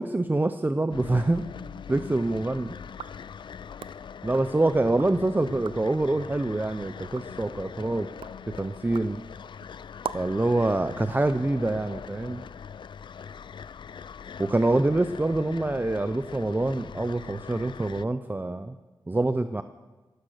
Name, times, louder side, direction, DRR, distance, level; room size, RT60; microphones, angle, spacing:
voice 1, 0.0-1.4 1.9-2.8 4.2-8.1 8.5-9.2 10.1-12.4 14.4-18.8 19.1-19.6, right 2 dB, 20° right, 11 dB, 0.6 m, -26 dB
sound 1, 0.9-18.0, left 7 dB, 65° left, 0.4 m, -42 dB
sound 2, 2.9-5.2 5.5-6.0 6.5-10.5, right 7 dB, 90° right, 0.4 m, -44 dB
14.5 x 12.0 x 6.6 m, 1.2 s
cardioid pair, 60°, 9 cm